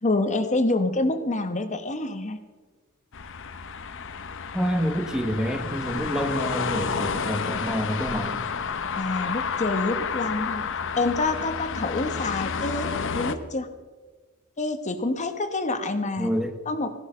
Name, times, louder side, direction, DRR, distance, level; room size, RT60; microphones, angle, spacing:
voice 1, 0.0-2.4 9.0-10.6 11.0-13.7 14.6-16.3 16.7-16.9, left 2 dB, 35° left, 8 dB, 1.0 m, -27 dB
sound 1, 3.1-13.3, left 5 dB, 65° left, 0.9 m, -30 dB
voice 2, 4.5-8.4 16.2-16.5, equal, 5° right, 7 dB, 1.0 m, -27 dB
16.5 x 12.0 x 5.5 m, 1.4 s
head